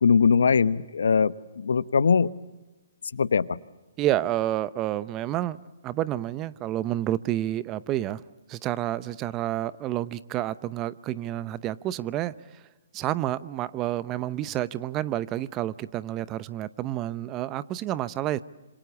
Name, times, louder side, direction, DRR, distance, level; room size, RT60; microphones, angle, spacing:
voice 1, 0.0-2.3 3.1-3.6, left 5 dB, 70° left, 16 dB, 0.9 m, -21 dB
voice 2, 4.0-5.6 5.8-8.2 8.5-12.6 12.9-18.4, right 13 dB, 25° right, 17 dB, 0.7 m, -29 dB
27.0 x 26.5 x 7.1 m, 1.2 s
hypercardioid pair, 140°, 0 cm